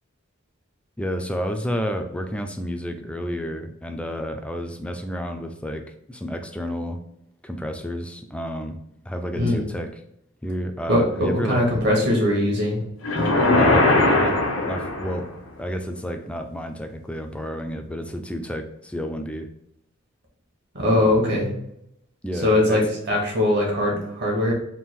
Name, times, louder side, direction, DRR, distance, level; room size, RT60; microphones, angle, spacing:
voice 1, 1.0-7.0 7.4-9.9 10.4-11.6 13.6-15.3 15.6-19.5 21.0-21.3 22.2-22.9, equal, 5° left, 5 dB, 0.4 m, -30 dB
voice 2, 9.4-9.7 10.9-12.8 13.1-13.3 20.7-21.5 22.4-24.5, left 1 dB, 60° right, -1 dB, 1.3 m, -21 dB
sound 1, 13.0-15.4, left 2 dB, 90° left, 0.8 m, -20 dB
3.7 x 2.4 x 4.3 m, 0.77 s
head